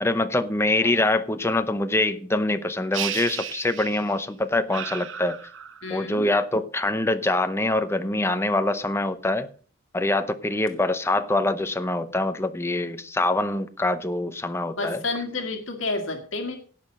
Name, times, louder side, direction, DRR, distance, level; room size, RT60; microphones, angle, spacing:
voice 1, 0.0-5.4 5.9-9.5 9.9-15.0, left 2 dB, 15° left, 9 dB, 0.7 m, -24 dB
sound 1, 2.9-4.3 4.7-6.0, right 9 dB, 70° right, 0.8 m, -34 dB
voice 2, 5.8-6.3 11.1-11.2 14.8-16.6, left 3 dB, 75° left, 5 dB, 1.8 m, -30 dB
17.0 x 5.9 x 5.4 m, 0.43 s
head